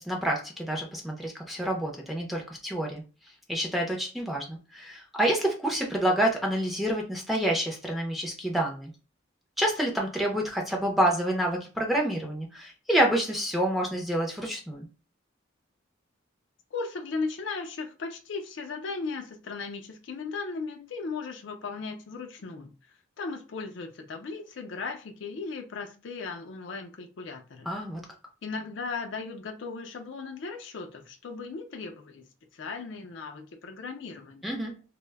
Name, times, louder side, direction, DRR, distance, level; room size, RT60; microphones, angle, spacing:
voice 1, 0.0-3.0 3.5-8.9 9.6-14.9 27.7-28.0 34.4-34.7, right 1 dB, ahead, -1 dB, 0.5 m, -28 dB
voice 2, 16.7-22.7 23.2-27.7 28.4-32.3 32.5-34.5, left 4 dB, 65° left, 5 dB, 0.4 m, -37 dB
2.1 x 2.0 x 3.3 m, 0.33 s
head